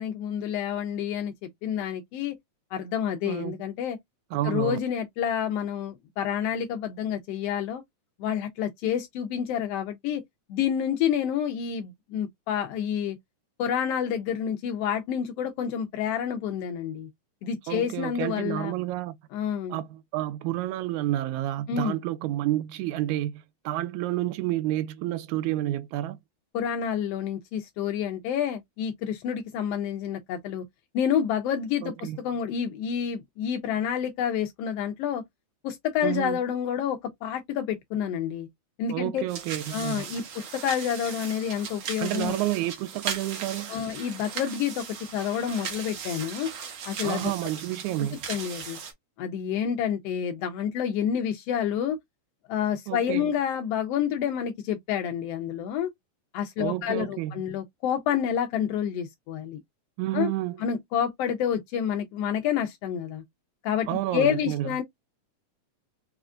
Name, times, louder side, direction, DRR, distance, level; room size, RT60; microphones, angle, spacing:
voice 1, 0.0-1.3 1.6-2.4 2.7-4.0 4.4-7.8 8.2-10.2 10.5-13.2 13.6-17.1 17.4-18.7 19.3-19.8 21.7-22.0 26.5-30.6 30.9-35.2 35.6-38.5 38.8-39.2 39.7-42.4 43.7-44.8 45.1-46.5 46.9-47.3 48.3-48.8 49.2-52.0 52.5-55.9 56.3-59.6 60.1-60.3 60.6-63.2 63.6-64.8, left 8 dB, 85° left, 1.4 m, -28 dB
voice 2, 3.2-3.6 4.3-4.8 17.7-19.2 19.7-26.2 31.8-32.2 36.0-36.4 38.9-40.1 42.0-43.8 47.0-48.2 52.9-53.3 56.6-57.3 60.0-60.6 63.9-64.7, right 15 dB, 80° right, 1.9 m, -30 dB
sound 1, 39.3-48.9, right 6 dB, 60° right, 1.7 m, -38 dB
4.9 x 2.5 x 2.3 m
omnidirectional pair, 3.4 m